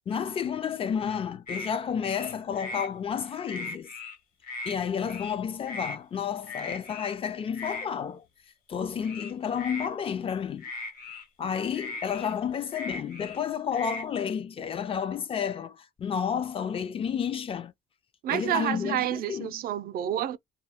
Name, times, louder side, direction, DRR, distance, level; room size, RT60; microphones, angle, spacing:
voice 1, 0.1-3.9 4.7-8.2 8.7-10.6 11.4-17.7 18.3-19.6, left 7 dB, 35° left, 0.4 m, -31 dB
sound 1, 1.5-1.7 2.0-2.9 3.3-4.2 4.4-4.8 5.1-5.4 5.7-6.0 6.5-7.1 7.5-7.9 9.0-9.9 10.6-11.2 11.7-13.4 13.7-14.1, left 3 dB, 55° left, 1.0 m, -38 dB
voice 2, 18.2-20.4, right 11 dB, 60° right, 0.4 m, -29 dB
2.2 x 2.2 x 3.4 m
cardioid pair, 110°, 17 cm